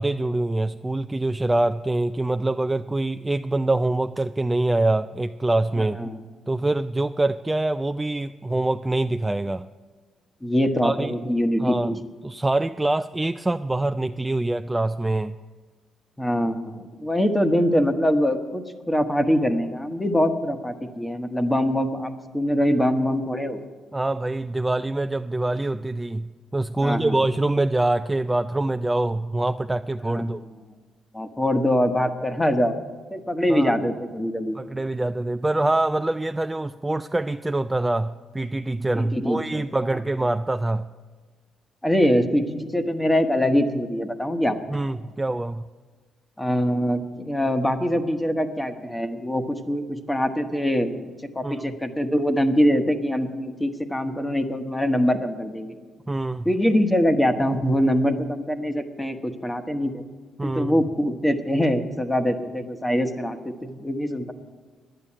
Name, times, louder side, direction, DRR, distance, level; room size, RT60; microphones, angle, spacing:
voice 1, 0.0-6.0 6.5-9.7 10.8-11.2 11.6-11.9 12.2-15.4 23.9-30.4 33.5-33.7 34.5-40.9 44.7-45.6 51.4-51.7 56.1-56.5 60.4-60.8, right 2 dB, 15° right, 9 dB, 0.3 m, -25 dB
voice 2, 10.4-12.0 16.2-23.6 26.8-27.2 30.0-30.3 31.1-32.8 33.1-34.6 38.9-39.6 39.9-40.0 41.8-44.6 46.4-50.9 51.3-55.8 56.4-60.0 60.4-64.3, equal, 10° left, 8 dB, 1.2 m, -23 dB
10.5 x 8.9 x 9.9 m, 1.4 s
cardioid pair, 90°, 0 cm